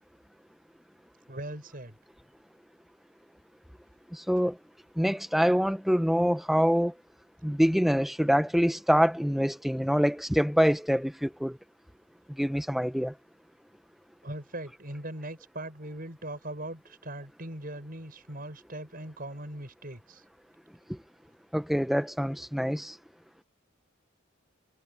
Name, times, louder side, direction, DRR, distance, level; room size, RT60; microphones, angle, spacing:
voice 1, 1.3-2.0 14.2-20.2, right 1 dB, 45° right, 7.5 m, -40 dB
voice 2, 4.1-4.6 5.0-6.9 7.4-11.6 12.3-13.1 20.9-21.0 21.5-23.0, equal, ahead, 1.0 m, -25 dB
head